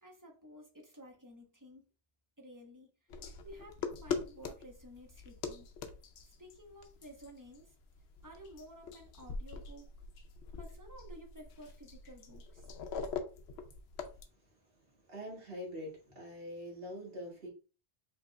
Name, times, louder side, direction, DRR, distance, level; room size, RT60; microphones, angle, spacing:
voice 1, 0.0-1.9 2.4-5.7 6.2-7.7 8.2-9.9 10.6-12.7, equal, 20° right, 0.9 m, -53 dB
sound 1, 3.1-14.2, left 5 dB, 75° left, 0.9 m, -43 dB
voice 2, 14.1-17.5, equal, 60° right, 2.0 m, -45 dB
4.9 x 3.5 x 2.3 m
omnidirectional pair, 1.1 m